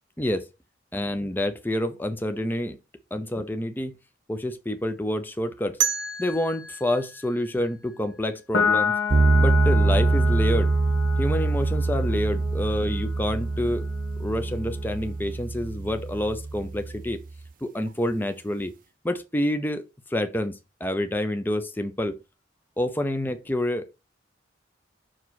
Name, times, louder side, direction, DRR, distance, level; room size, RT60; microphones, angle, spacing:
voice 1, 0.9-2.8 3.1-3.9 4.3-5.8 6.2-8.9 9.4-10.7 11.2-13.8 14.2-17.2 17.6-18.7 19.0-19.8 20.1-22.2 22.8-24.0, left 1 dB, 10° left, 0.5 m, -28 dB
sound 1, 5.8-8.7, right 8 dB, 75° right, 1.1 m, -32 dB
Piano, 8.5-15.2, left 6 dB, 70° left, 1.1 m, -30 dB
sound 2, 9.1-17.3, right 3 dB, 45° right, 0.5 m, -24 dB
6.1 x 4.7 x 4.0 m
head